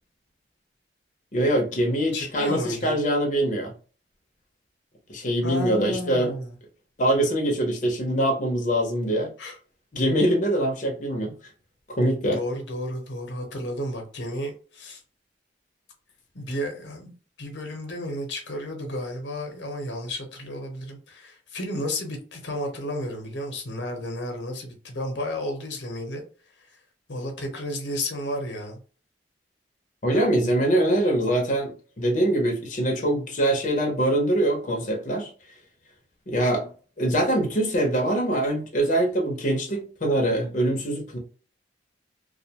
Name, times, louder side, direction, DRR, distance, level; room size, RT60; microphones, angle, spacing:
voice 1, 1.3-3.7 5.1-6.3 7.0-9.3 9.9-11.3 12.0-12.4 30.0-35.3 36.3-36.7 37.0-41.2, right 1 dB, 45° left, 0.7 m, -23 dB
voice 2, 2.1-3.0 5.4-6.6 9.4-9.6 12.3-15.0 16.3-17.1 17.4-26.2 27.1-28.8, left 1 dB, 90° left, 0.8 m, -32 dB
2.4 x 2.2 x 2.8 m
head